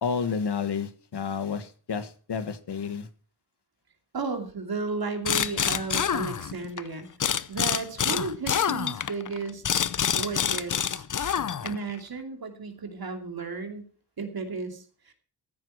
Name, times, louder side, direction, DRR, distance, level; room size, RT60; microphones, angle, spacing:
voice 1, 0.0-3.1, left 6 dB, 80° left, 11 dB, 1.5 m, -30 dB
voice 2, 4.1-7.1 7.5-9.6 10.1-11.0 11.6-13.9 14.2-15.1, right 4 dB, 65° right, 5 dB, 2.7 m, -34 dB
sound 1, 5.2-6.8 7.2-11.9, left 8 dB, 50° left, 0.7 m, -27 dB
15.0 x 9.6 x 4.6 m, 0.42 s
wide cardioid pair, 95°, 40 cm